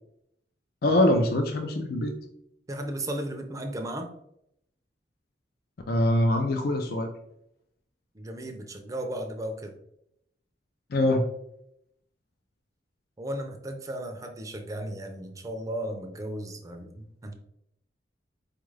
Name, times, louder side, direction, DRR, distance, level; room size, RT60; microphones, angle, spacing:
voice 1, 0.8-2.1 5.9-7.1 10.9-11.2, left 1 dB, 60° left, 4 dB, 0.5 m, -23 dB
voice 2, 2.7-4.1 8.1-9.8 13.2-17.3, right 1 dB, 20° right, 4 dB, 0.5 m, -35 dB
4.6 x 2.4 x 3.2 m, 0.77 s
head